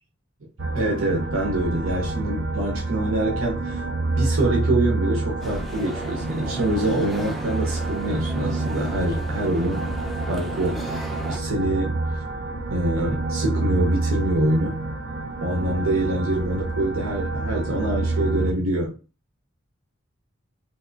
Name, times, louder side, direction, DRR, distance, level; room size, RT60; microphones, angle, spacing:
sound 1, 0.6-18.5, right 2 dB, 60° right, 0.5 m, -28 dB
voice 1, 0.7-9.9 10.3-10.8 11.3-12.0 12.7-14.8 15.4-18.9, right 1 dB, 80° right, 0.9 m, -25 dB
sound 2, 5.4-11.4, equal, ahead, 0.3 m, -37 dB
3.3 x 2.9 x 2.6 m
head